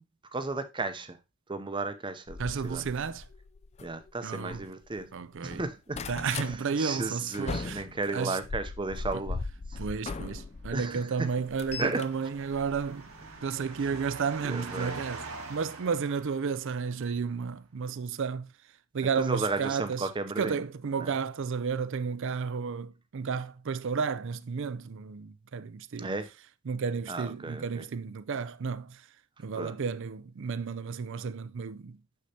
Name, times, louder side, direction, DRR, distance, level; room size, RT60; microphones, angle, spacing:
voice 1, 0.3-1.2 1.5-2.8 3.8-5.1 5.4-6.0 6.8-9.4 10.7-11.0 11.8-12.0 14.4-15.0 19.2-20.6 21.0-21.1 26.0-26.3 27.1-27.8 29.6-29.8, right 3 dB, 20° right, 0.7 m, -34 dB
sound 1, 2.3-5.1 5.4-6.6 7.0-10.8 11.2-13.4 14.4-14.6 15.1-15.2 15.4-15.5, left 4 dB, 30° left, 0.4 m, -39 dB
voice 2, 2.4-3.2 4.2-4.7 5.1-5.6 6.1-8.4 9.1-9.2 9.8-13.1 13.4-18.5 18.9-20.1 20.4-26.1 26.7-29.0 29.4-32.0, right 5 dB, 60° right, 0.5 m, -32 dB
sound 2, 10.8-17.0, right 3 dB, 85° right, 1.7 m, -45 dB
6.6 x 6.5 x 2.8 m
head